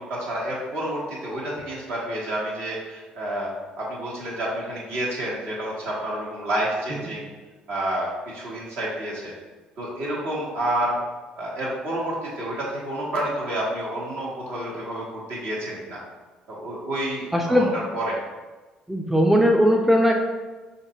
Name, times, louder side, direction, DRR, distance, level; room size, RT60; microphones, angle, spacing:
voice 1, 0.0-3.5 3.8-7.2 7.7-9.3 9.8-10.9 11.4-16.0 16.5-18.2, right 1 dB, 60° right, -5 dB, 1.2 m, -29 dB
voice 2, 17.3-17.7 18.9-20.1, equal, 5° right, 1 dB, 0.4 m, -19 dB
5.7 x 2.7 x 2.8 m, 1.3 s
figure-of-eight pair, 50°, 4 cm